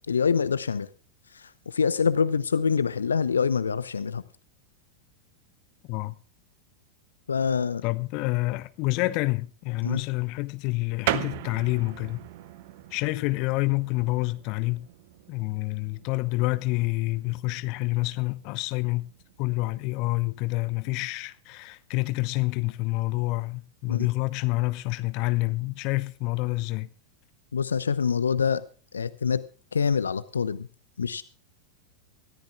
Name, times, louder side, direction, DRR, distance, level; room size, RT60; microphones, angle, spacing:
voice 1, 0.1-0.9 1.3-4.2 7.3-7.8 9.8-10.0 23.9-24.1 27.5-28.6 28.9-29.4 29.7-30.7 31.0-31.2, left 6 dB, 70° left, 0.7 m, -25 dB
voice 2, 7.8-12.2 12.9-14.9 15.3-19.0 19.4-26.9, left 22 dB, 45° left, 0.8 m, -28 dB
sound 1, 11.0-21.2, right 14 dB, 50° right, 0.9 m, -39 dB
23.5 x 14.5 x 2.4 m
figure-of-eight pair, 90°, 0 cm